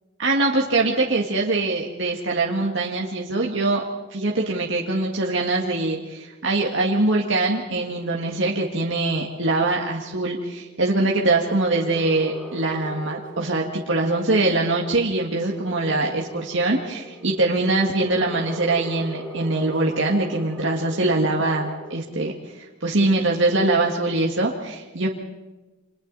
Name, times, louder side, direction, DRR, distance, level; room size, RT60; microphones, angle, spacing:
voice 1, 0.2-3.9 4.1-25.1, right 2 dB, 70° right, -1 dB, 2.0 m, -23 dB
sound 1, 4.6-22.0, right 1 dB, 5° left, 7.5 m, -41 dB
30.0 x 26.5 x 4.1 m, 1.1 s
head